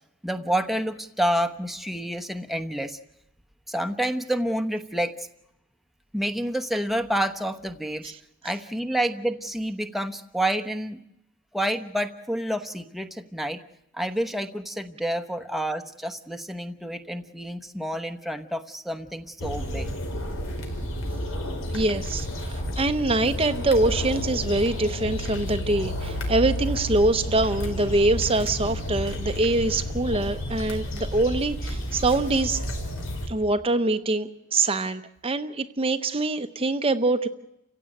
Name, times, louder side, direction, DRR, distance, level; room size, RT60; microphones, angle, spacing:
voice 1, 0.2-3.0 3.7-5.3 6.1-8.1 8.4-11.0 11.5-13.6 13.9-19.9, right 1 dB, ahead, 7 dB, 1.0 m, -28 dB
sound 1, 19.4-33.3, equal, 80° left, 5.2 m, -31 dB
voice 2, 21.7-32.6 33.3-37.3, right 2 dB, 30° right, 8 dB, 0.9 m, -24 dB
30.0 x 16.0 x 9.1 m, 0.84 s
head